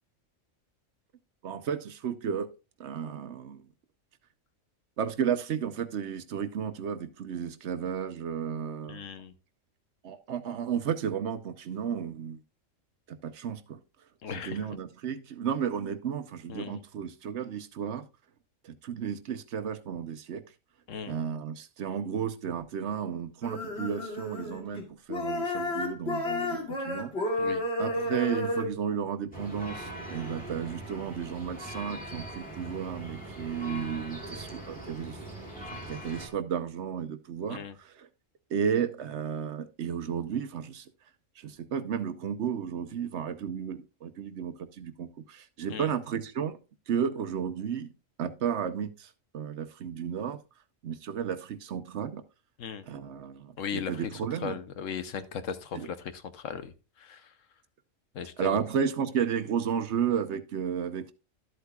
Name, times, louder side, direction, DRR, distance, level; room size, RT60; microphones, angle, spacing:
voice 1, 1.4-2.5 2.8-3.7 5.0-9.0 10.0-12.4 13.1-13.8 14.4-18.0 18.6-20.4 21.1-27.4 27.8-35.2 35.7-38.1 38.5-40.9 41.4-46.6 46.9-47.9 48.2-50.4 50.8-52.2 52.9-54.6 55.7-55.9 58.4-61.1, right 7 dB, 60° right, 10 dB, 1.1 m, -33 dB
voice 2, 8.9-9.3 14.2-14.6 16.5-16.8 20.9-21.2 27.4-27.6 37.5-37.7 45.7-45.9 52.6-52.9 53.6-53.9 54.4-57.3 58.1-58.6, left 7 dB, 75° left, 11 dB, 1.2 m, -37 dB
sound 1, 23.4-24.8 25.1-28.7, left 1 dB, 55° left, 2.5 m, -31 dB
sound 2, 29.3-36.3, right 1 dB, 5° left, 2.9 m, -41 dB
12.5 x 8.2 x 2.3 m, 0.30 s
omnidirectional pair, 1.4 m